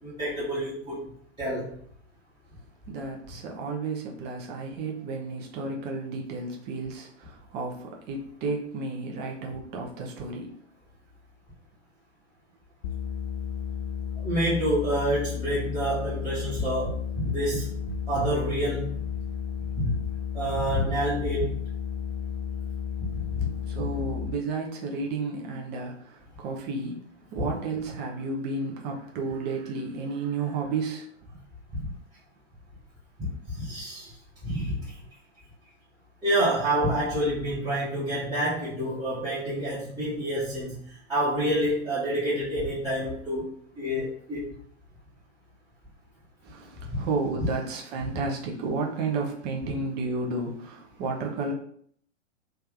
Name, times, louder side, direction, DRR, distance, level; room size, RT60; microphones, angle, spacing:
voice 1, 0.0-1.0 1.4-1.7 14.2-17.7 18.1-19.0 19.7-19.9 20.3-21.5 23.0-23.5 23.8-24.0 31.7-31.9 33.2-34.1 34.4-34.9 36.2-43.4 43.8-44.5 48.1-48.2, right 1 dB, 10° right, -12 dB, 1.2 m, -28 dB
voice 2, 2.9-10.5 23.7-26.0 26.4-27.0 27.3-31.0 46.4-51.5, right 3 dB, 25° right, 0 dB, 0.8 m, -32 dB
sound 1, 12.8-24.3, left 8 dB, 55° left, 0.5 m, -33 dB
3.3 x 2.7 x 3.5 m, 0.62 s
figure-of-eight pair, 105°, 38 cm